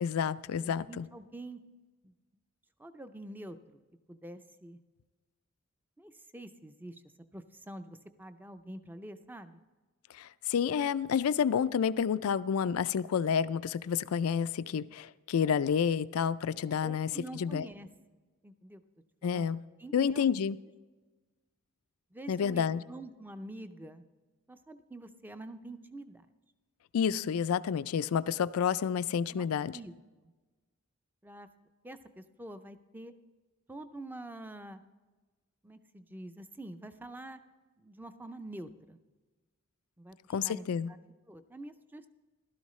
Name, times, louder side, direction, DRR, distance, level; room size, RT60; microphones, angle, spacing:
voice 1, 0.0-1.1 10.1-17.7 19.2-19.6 19.9-20.6 22.3-22.8 26.9-29.8 40.3-40.9, left 7 dB, 90° left, 17 dB, 0.4 m, -29 dB
voice 2, 0.6-1.6 2.0-2.1 2.8-3.8 4.1-4.8 6.0-7.0 7.3-9.6 16.8-17.9 18.4-18.8 19.2-19.5 19.8-20.2 22.1-24.0 24.5-26.3 29.3-29.5 29.7-29.9 30.2-30.3 31.2-31.5 31.8-33.1 33.7-34.8 35.6-37.4 37.8-39.0 40.0-40.2 40.4-41.0 41.3-42.1, right 1 dB, 10° right, 10 dB, 0.4 m, -46 dB
15.5 x 12.5 x 3.2 m, 1.3 s
head